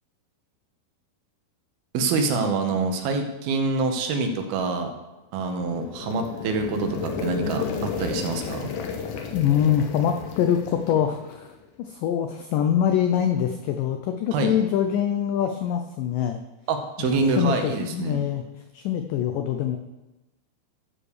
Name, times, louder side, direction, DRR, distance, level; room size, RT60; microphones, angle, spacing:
voice 1, 1.9-4.9 5.3-8.7 14.3-14.5 16.7-18.2, right 4 dB, 75° right, 5 dB, 2.8 m, -26 dB
sound 1, 5.5-11.5, left 5 dB, 70° left, 2.0 m, -33 dB
voice 2, 9.3-16.4 17.0-18.5 18.7-19.8, left 9 dB, 85° left, 6 dB, 1.9 m, -24 dB
12.0 x 5.0 x 6.6 m, 1.0 s
omnidirectional pair, 4.6 m